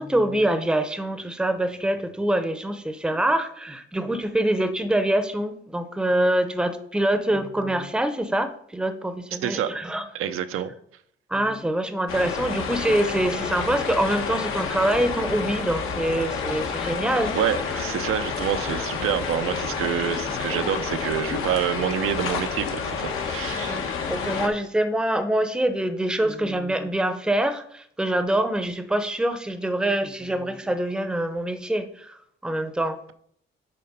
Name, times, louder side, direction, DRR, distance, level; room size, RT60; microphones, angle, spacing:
voice 1, 0.0-10.1 11.3-17.3 23.7-33.0, right 1 dB, 5° right, 0.7 m, -25 dB
voice 2, 9.4-9.7 10.1-10.7 17.3-24.0, right 10 dB, 85° right, 0.6 m, -27 dB
sound 1, 12.1-24.5, left 5 dB, 85° left, 1.5 m, -29 dB
9.5 x 4.3 x 5.4 m
cardioid pair, 135°, 21 cm